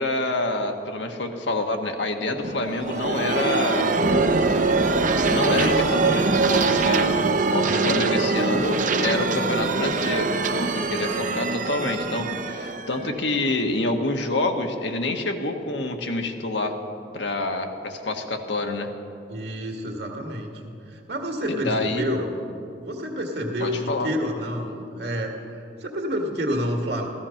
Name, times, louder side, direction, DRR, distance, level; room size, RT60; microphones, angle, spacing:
voice 1, 0.0-3.9 5.3-7.1 7.5-16.8 17.1-18.9 21.5-22.1 23.6-24.1, left 2 dB, 75° left, 4 dB, 1.4 m, -27 dB
sound 1, 2.4-13.9, right 3 dB, 45° right, 0.7 m, -23 dB
voice 2, 19.3-22.3 22.8-27.1, equal, 60° right, 2 dB, 1.9 m, -29 dB
14.5 x 14.5 x 5.8 m, 2.6 s
head